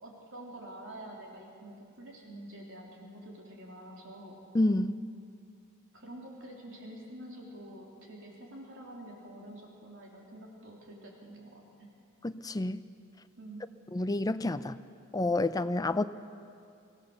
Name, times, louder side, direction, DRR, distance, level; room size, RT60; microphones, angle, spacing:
voice 1, 0.0-4.4 5.9-11.9 13.4-13.6, right 1 dB, 65° right, -1 dB, 3.3 m, -47 dB
voice 2, 4.5-5.0 12.2-12.8 13.9-14.8 15.1-16.0, left 2 dB, 15° left, 11 dB, 0.5 m, -29 dB
24.0 x 16.5 x 6.7 m, 2.5 s
head